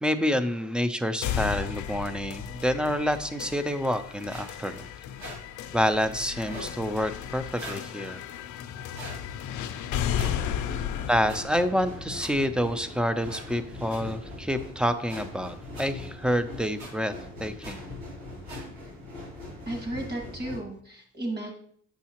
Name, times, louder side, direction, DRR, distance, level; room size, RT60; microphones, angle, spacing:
voice 1, 0.0-4.9 5.7-8.2 11.1-17.1 17.4-17.8, equal, 5° right, 11 dB, 0.4 m, -28 dB
sound 1, 1.2-13.2, left 9 dB, 75° left, 0.5 m, -35 dB
sound 2, 4.3-4.5 5.2-5.4 6.4-6.7 7.5-7.8 8.9-9.2 10.1-10.3 11.3-11.4 12.2-12.3 13.3-13.4 13.9-14.0 15.1-15.2 15.7-15.8 16.8-16.9 17.6-17.7 18.4-18.6, equal, 65° right, 2.3 m, -40 dB
sound 3, 10.2-20.6, left 2 dB, 90° right, 2.9 m, -41 dB
voice 2, 19.7-21.5, right 1 dB, 35° right, 2 dB, 1.8 m, -34 dB
7.1 x 5.6 x 2.9 m, 0.62 s
cardioid pair, 90°, 30 cm